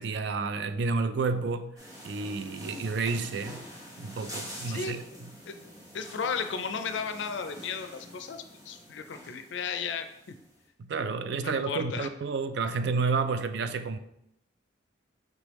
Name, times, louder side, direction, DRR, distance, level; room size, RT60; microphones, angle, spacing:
voice 1, 0.0-1.7 2.0-3.6 4.0-5.0 10.8-14.0, right 4 dB, 60° right, 10 dB, 0.3 m, -30 dB
sound 1, 1.8-10.5, equal, 20° right, 1.0 m, -46 dB
voice 2, 4.7-5.0 5.5-5.6 5.9-10.3 11.4-12.1, left 5 dB, 70° left, 9 dB, 0.4 m, -34 dB
5.3 x 3.3 x 3.0 m, 0.78 s
head